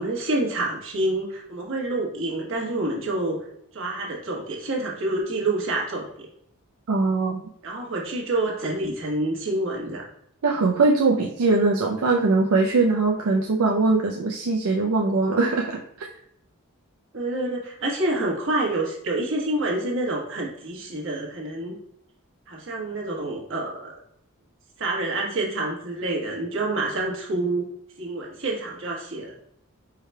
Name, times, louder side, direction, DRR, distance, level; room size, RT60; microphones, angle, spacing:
voice 1, 0.0-3.4 3.7-6.3 7.6-10.0 17.1-21.8 22.5-23.9 24.8-27.6 28.0-29.3, right 2 dB, 60° right, -2 dB, 1.3 m, -27 dB
voice 2, 6.9-7.4 10.4-16.1, right 3 dB, 80° right, 1 dB, 0.5 m, -21 dB
4.9 x 4.7 x 2.2 m, 0.74 s
head